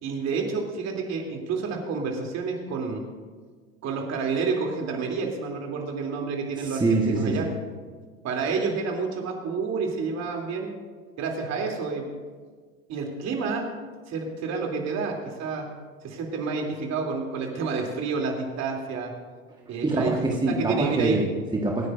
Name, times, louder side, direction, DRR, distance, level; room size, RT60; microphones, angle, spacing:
voice 1, 0.0-3.0 3.8-7.5 8.2-10.7 11.2-12.1 12.9-13.7 14.1-15.7 16.0-19.1 19.7-20.1 20.5-21.2, right 4 dB, 40° right, 1 dB, 3.1 m, -29 dB
voice 2, 6.6-7.4 19.8-21.9, right 2 dB, 10° right, -1 dB, 1.5 m, -25 dB
26.5 x 9.8 x 2.6 m, 1.5 s
hypercardioid pair, 90°, 39 cm